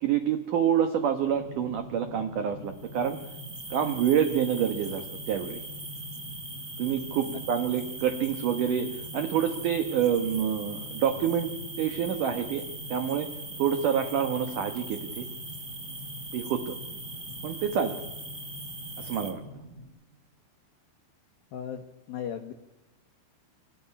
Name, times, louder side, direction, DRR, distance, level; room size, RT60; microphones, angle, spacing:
voice 1, 0.0-3.2 3.7-5.6 6.8-11.5 11.8-12.6 12.9-13.3 13.6-15.3 16.3-16.8 17.4-17.9 19.0-19.4, right 8 dB, 90° right, 8 dB, 1.8 m, -27 dB
sound 1, 1.2-19.9, equal, 20° left, 4.6 m, -45 dB
sound 2, 2.7-19.3, right 2 dB, 20° right, 1.6 m, -41 dB
voice 2, 21.5-22.5, left 8 dB, 75° left, 6 dB, 2.2 m, -37 dB
25.0 x 14.0 x 9.9 m, 1.0 s
omnidirectional pair, 5.6 m